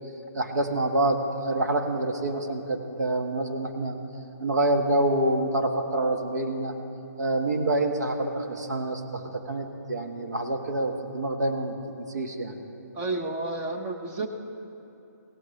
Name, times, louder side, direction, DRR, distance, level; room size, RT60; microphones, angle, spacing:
voice 1, 0.3-4.0 4.4-6.7 7.2-12.6, right 1 dB, 75° right, 4 dB, 1.5 m, -27 dB
voice 2, 12.9-14.3, right 3 dB, 15° right, 3 dB, 0.6 m, -31 dB
17.0 x 15.5 x 3.2 m, 2.9 s
hypercardioid pair, 155°, 9 cm